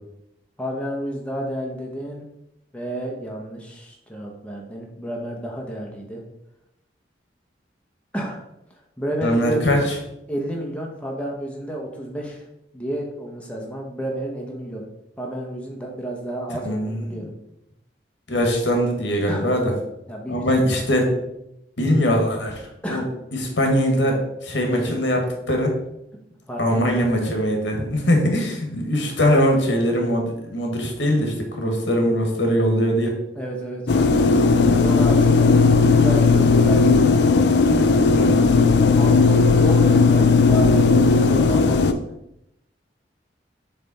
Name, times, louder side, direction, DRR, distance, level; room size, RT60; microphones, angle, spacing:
voice 1, 0.6-2.2 2.7-6.2 8.1-8.4 9.0-9.7 10.3-12.5 12.7-14.9 15.2-17.3 19.3-19.5 20.1-20.7 22.8-23.1 26.5-27.1 33.3-33.9 34.7-35.5 35.8-37.2 39.0-42.1, right 1 dB, 5° left, -1 dB, 0.9 m, -30 dB
voice 2, 9.2-9.8 16.6-17.2 18.3-19.7 20.3-21.1 21.8-23.0 23.4-24.1 24.4-25.2 25.5-25.7 26.6-33.1 36.0-36.3 38.1-38.4, equal, 90° left, 2 dB, 1.5 m, -21 dB
sound 1, 33.9-41.9, left 4 dB, 75° left, 0.5 m, -16 dB
7.2 x 3.4 x 4.1 m, 0.83 s
head